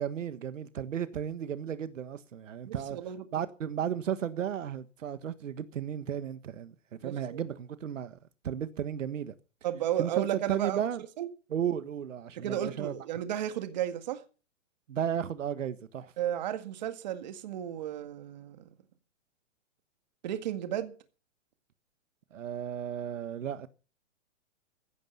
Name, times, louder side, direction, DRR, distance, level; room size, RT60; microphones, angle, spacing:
voice 1, 0.0-3.0 3.3-6.7 7.0-8.2 8.4-9.3 10.0-11.0 11.5-12.9 14.9-16.1 22.3-23.7, right 9 dB, 75° right, 1.6 m, -34 dB
voice 2, 2.7-3.2 7.0-7.4 9.6-10.8 11.2-11.3 12.4-14.2 16.2-18.6 20.2-20.9, right 11 dB, 35° right, 1.9 m, -33 dB
15.5 x 12.5 x 5.6 m
hypercardioid pair, 175°, 38 cm